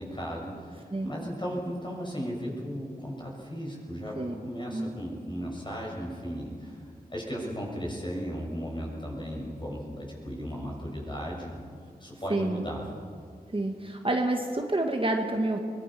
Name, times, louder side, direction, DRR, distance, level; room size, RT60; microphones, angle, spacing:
voice 1, 0.0-4.2 4.4-11.6 12.0-12.8, equal, 30° left, -2 dB, 6.9 m, -36 dB
voice 2, 12.3-12.6 13.5-15.6, right 2 dB, 35° right, 3 dB, 1.7 m, -28 dB
23.0 x 19.5 x 6.0 m, 2.2 s
wide cardioid pair, 60°, 16 cm